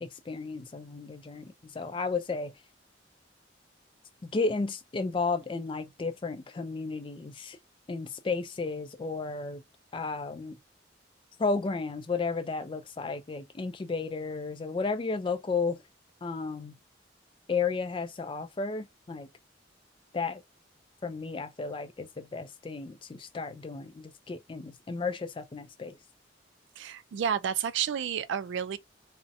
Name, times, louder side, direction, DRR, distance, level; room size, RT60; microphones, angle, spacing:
voice 1, 0.0-2.5 4.2-7.6 7.9-9.6 9.9-10.6 11.4-15.8 16.2-16.8 17.5-19.3 20.1-20.4 21.0-26.0, left 4 dB, 25° left, 0.3 m, -33 dB
voice 2, 26.8-28.8, right 8 dB, 70° right, 0.3 m, -30 dB
2.6 x 2.1 x 2.6 m
head